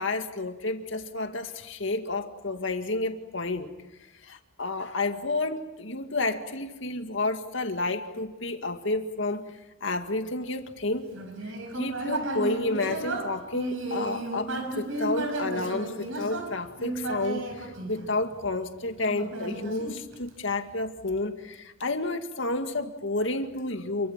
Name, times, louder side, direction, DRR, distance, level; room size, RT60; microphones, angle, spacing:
voice 1, 0.0-3.7 4.2-9.5 9.8-11.1 11.7-24.1, left 2 dB, 65° left, 6 dB, 2.2 m, -30 dB
Human voice, 11.1-18.5 19.1-20.5, right 2 dB, 75° right, 5.3 m, -33 dB
29.0 x 24.0 x 7.6 m, 1.0 s
head